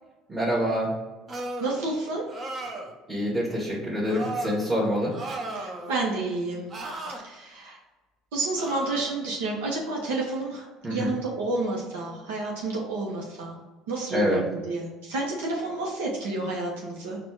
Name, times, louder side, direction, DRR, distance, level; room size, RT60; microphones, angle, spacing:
voice 1, 0.3-0.9 3.1-5.1 10.8-11.1 14.1-14.4, equal, 20° right, -7 dB, 1.5 m, -26 dB
sound 1, 1.3-1.8 2.3-2.9 4.1-4.6 5.1-6.0 6.7-7.2 8.6-9.1, right 2 dB, 35° right, 0.8 m, -35 dB
voice 2, 1.6-2.2 5.5-6.7 7.2-7.8 8.3-10.6 10.9-13.6 13.9-17.2, right 2 dB, 85° right, -3 dB, 0.9 m, -30 dB
4.2 x 2.5 x 4.6 m, 1.2 s
supercardioid pair, 85°, 0 cm